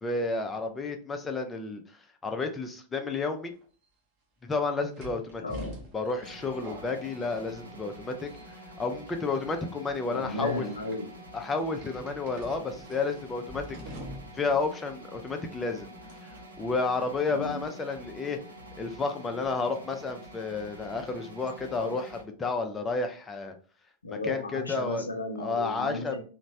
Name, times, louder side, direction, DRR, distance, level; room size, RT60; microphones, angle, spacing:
voice 1, 0.0-1.8 2.2-3.5 4.4-5.4 5.9-8.3 8.8-10.7 11.3-13.6 14.3-15.9 16.6-18.4 18.8-23.5 24.1-25.1 25.4-26.2, left 3 dB, 15° left, 5 dB, 0.5 m, -31 dB
sound 1, 3.6-3.7 4.9-7.9 8.2-8.7 9.4-9.6 10.3-11.0 11.8-14.5 14.8-14.9 16.1-16.4, equal, 40° right, 0.9 m, -45 dB
voice 2, 5.4-5.8 10.1-11.1 17.3-17.6 24.0-26.2, left 2 dB, 75° left, 4 dB, 0.5 m, -34 dB
sound 2, 6.2-22.2, equal, 75° right, 0.6 m, -47 dB
3.0 x 2.1 x 2.6 m, 0.40 s
figure-of-eight pair, 90°, 0 cm